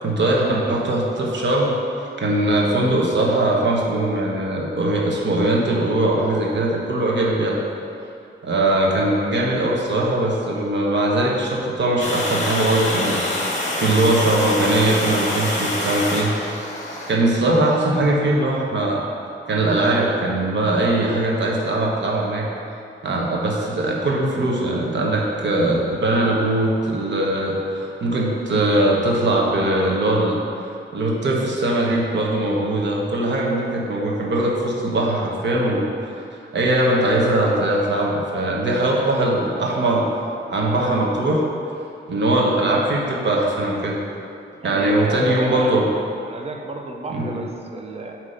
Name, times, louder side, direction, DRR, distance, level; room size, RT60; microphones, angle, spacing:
voice 1, 0.0-1.8 2.2-7.6 8.4-16.6 17.1-19.0 19.5-22.5 23.0-30.4 30.9-36.1 36.5-40.1 40.5-41.4 42.1-44.0 44.6-45.8 47.1-47.4, right 1 dB, 65° right, -3 dB, 1.1 m, -21 dB
Water, 12.0-17.1, left 1 dB, 35° left, 1.3 m, -25 dB
voice 2, 44.6-45.8 46.3-48.2, right 3 dB, 30° right, 2 dB, 0.6 m, -32 dB
8.5 x 3.1 x 5.1 m, 2.6 s
wide cardioid pair, 110°, 20 cm